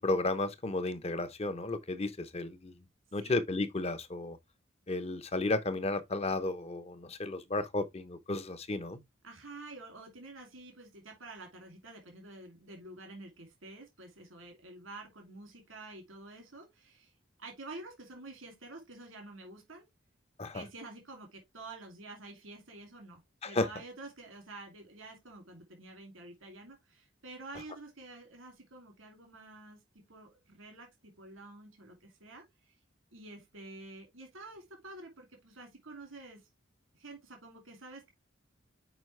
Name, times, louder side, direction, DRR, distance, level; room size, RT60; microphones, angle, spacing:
voice 1, 0.0-2.8 3.1-4.4 4.9-9.0 20.4-20.6 23.4-23.7, left 2 dB, 30° left, 0.8 m, -33 dB
voice 2, 9.2-17.1 17.4-19.9 20.5-29.8 30.1-32.7 33.1-36.4 36.9-38.1, right 2 dB, 90° right, 2.7 m, -49 dB
6.0 x 5.0 x 3.2 m
head